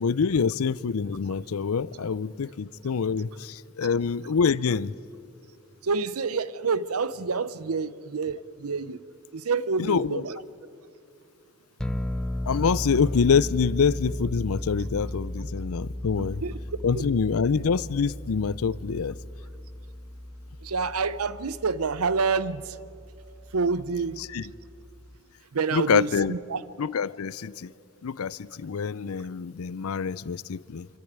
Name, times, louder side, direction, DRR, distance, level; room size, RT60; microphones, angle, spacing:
voice 1, 0.0-4.9 9.8-10.2 12.5-16.4 16.8-19.2 24.2-24.5 25.7-26.3 26.8-27.7 28.0-30.9, left 5 dB, 80° left, 0.5 m, -26 dB
voice 2, 5.8-9.0 9.3-10.4 16.2-16.6 16.9-17.1 20.6-22.8 23.5-24.2 25.5-26.6, right 4 dB, 90° right, 0.7 m, -28 dB
sound 1, 11.8-25.2, left 1 dB, 5° left, 0.5 m, -36 dB
25.0 x 13.5 x 9.5 m
head